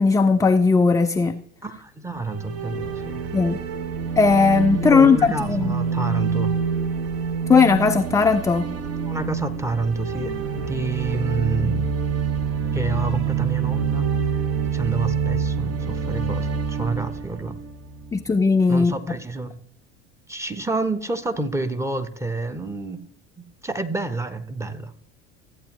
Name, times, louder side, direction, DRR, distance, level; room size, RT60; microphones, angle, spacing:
voice 1, 0.0-1.4 3.3-3.6 4.2-5.7 7.5-8.8 18.1-18.9, left 4 dB, 10° left, 0.4 m, -17 dB
voice 2, 1.6-3.2 4.8-6.5 8.7-11.9 12.7-14.1 14.7-17.6 18.7-19.5 20.3-23.0 23.4-24.9, right 3 dB, 10° right, 1.0 m, -28 dB
sound 1, 2.2-18.3, right 6 dB, 45° right, 1.3 m, -26 dB
14.5 x 8.6 x 3.1 m
hypercardioid pair, 70°, 35 cm